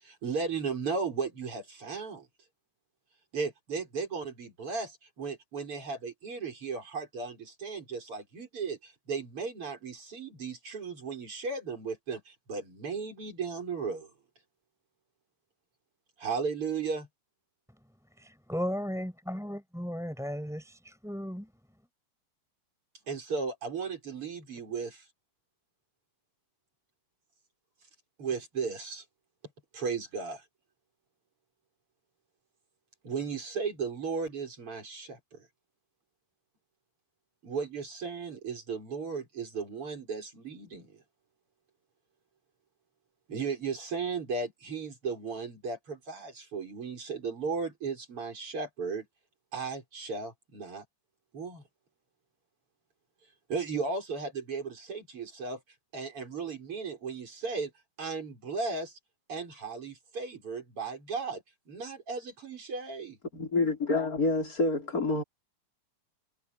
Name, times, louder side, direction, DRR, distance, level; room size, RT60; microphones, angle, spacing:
voice 1, 0.0-2.3 3.3-14.1 16.2-17.1 23.1-25.1 28.2-29.0 29.7-30.4 33.0-35.5 37.4-40.9 43.3-49.1 49.5-50.8 51.3-51.6 53.5-55.6 55.9-57.7 58.0-59.0 59.3-63.2, right 5 dB, 40° right, 6.1 m, -35 dB
voice 2, 18.5-21.5, equal, ahead, 5.3 m, -35 dB
voice 3, 63.3-65.2, left 3 dB, 25° left, 4.5 m, -27 dB
omnidirectional pair, 3.8 m